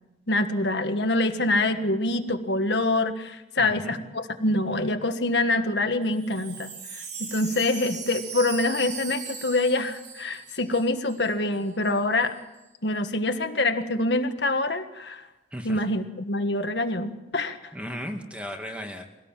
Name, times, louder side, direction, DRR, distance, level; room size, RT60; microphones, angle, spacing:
voice 1, 0.3-12.3 12.8-15.2 15.6-17.6, left 2 dB, 70° left, 7 dB, 1.6 m, -25 dB
voice 2, 3.6-4.0 15.5-15.8 17.7-19.1, equal, 5° right, 3 dB, 2.1 m, -36 dB
Wind chime, 6.0-11.3 11.5-11.6 11.8-12.3, right 6 dB, 60° right, 5.3 m, -39 dB
23.5 x 18.0 x 7.5 m, 1.0 s
head